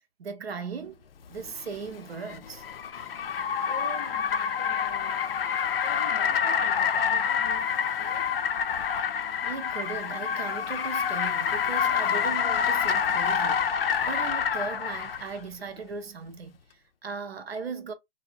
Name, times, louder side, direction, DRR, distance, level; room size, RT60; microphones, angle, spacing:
voice 1, 0.2-1.0 1.3-2.6 9.4-17.9, right 5 dB, 85° right, 0.8 m, -38 dB
Car, 1.4-15.3, left 7 dB, 70° left, 0.5 m, -27 dB
voice 2, 3.6-5.2 5.8-8.3, left 1 dB, 15° left, 0.5 m, -45 dB
2.8 x 2.1 x 2.4 m
hypercardioid pair, 160°, 30 cm